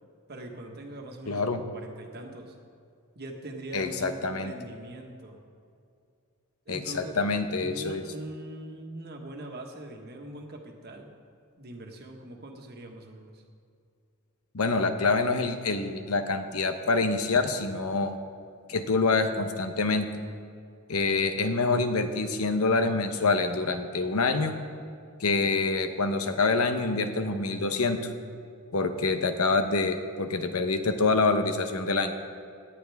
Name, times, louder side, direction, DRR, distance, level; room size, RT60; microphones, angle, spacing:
voice 1, 0.3-1.4 1.7-2.6 3.1-5.4 6.6-7.3 7.6-11.1 11.6-13.4, right 1 dB, 45° right, 2 dB, 1.5 m, -42 dB
voice 2, 1.3-1.6 3.7-4.5 6.7-8.0 14.5-18.2 18.7-20.1 20.9-24.5 25.2-28.1 28.7-32.1, left 3 dB, 75° left, 7 dB, 0.9 m, -26 dB
17.5 x 11.0 x 3.5 m, 2.4 s
head